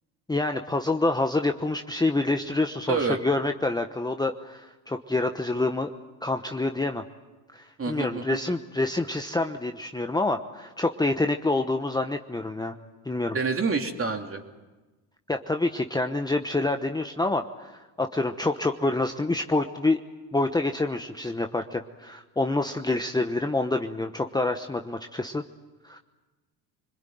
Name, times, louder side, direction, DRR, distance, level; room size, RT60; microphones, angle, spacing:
voice 1, 0.3-5.9 6.2-7.0 7.5-12.7 13.0-13.4 15.3-20.0 20.3-25.4 25.8-26.0, left 2 dB, 10° left, 5 dB, 1.0 m, -27 dB
voice 2, 7.8-8.4 13.3-14.4, right 4 dB, 30° right, 3 dB, 3.0 m, -27 dB
26.0 x 21.0 x 9.3 m, 1.2 s
supercardioid pair, 90°, 45 cm